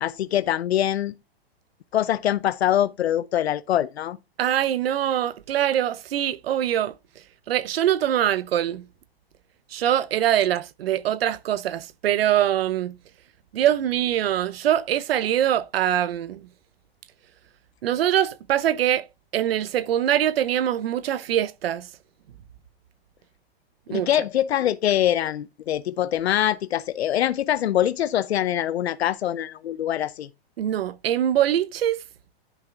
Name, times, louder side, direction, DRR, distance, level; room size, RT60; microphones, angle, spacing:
voice 1, 0.0-1.1 1.9-4.2 23.9-30.3, left 11 dB, 90° left, 0.7 m, -24 dB
voice 2, 4.4-6.9 7.5-8.8 9.7-12.9 13.5-16.4 17.8-19.1 19.3-21.9 23.9-24.1 30.6-32.0, right 11 dB, 70° right, 1.1 m, -23 dB
10.5 x 5.8 x 3.4 m
hypercardioid pair, 155°, 31 cm